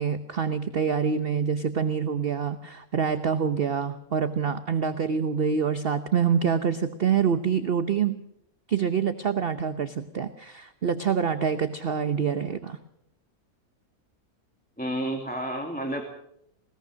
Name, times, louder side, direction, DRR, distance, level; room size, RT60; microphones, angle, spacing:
voice 1, 0.0-8.2 8.7-12.8, right 7 dB, 45° right, 11 dB, 1.0 m, -26 dB
voice 2, 14.8-16.0, right 1 dB, 5° left, 3 dB, 2.1 m, -30 dB
21.0 x 20.0 x 6.3 m, 0.77 s
omnidirectional pair, 1.6 m